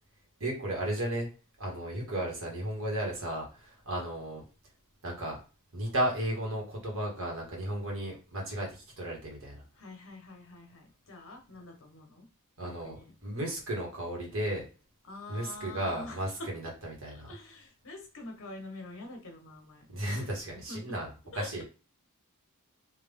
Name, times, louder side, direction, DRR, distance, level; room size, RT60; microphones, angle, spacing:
voice 1, 0.4-1.3 1.6-4.4 5.0-5.4 5.7-9.6 12.6-14.7 15.3-17.3 19.9-21.1 21.3-21.6, right 1 dB, 65° right, -1 dB, 1.8 m, -34 dB
voice 2, 9.8-12.3 12.6-13.1 15.0-16.5 17.1-20.3 20.5-21.0 21.3-21.6, left 2 dB, 65° left, 3 dB, 1.2 m, -46 dB
3.6 x 2.9 x 3.6 m, 0.35 s
head